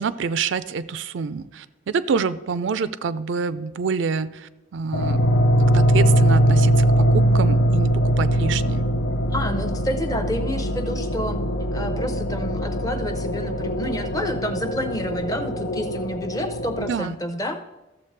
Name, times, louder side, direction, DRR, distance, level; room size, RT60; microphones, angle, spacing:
voice 1, 0.0-5.2 5.6-8.9 16.9-17.1, right 5 dB, 70° right, 14 dB, 0.4 m, -27 dB
sound 1, 4.9-16.9, equal, 80° left, 0.6 m, -21 dB
voice 2, 9.3-11.4 11.7-17.6, equal, 20° left, 7 dB, 0.7 m, -29 dB
13.5 x 7.1 x 3.3 m, 1.0 s
head